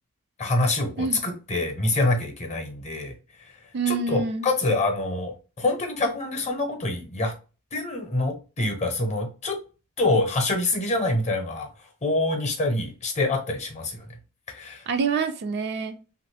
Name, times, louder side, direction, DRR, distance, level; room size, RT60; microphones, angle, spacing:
voice 1, 0.4-3.1 3.9-7.3 7.7-9.6 10.0-11.7 12.0-14.1 14.5-14.8, left 2 dB, 30° left, 0.7 m, -26 dB
voice 2, 3.7-4.5 14.9-16.0, right 4 dB, 50° right, 0.4 m, -26 dB
3.0 x 2.5 x 3.3 m
head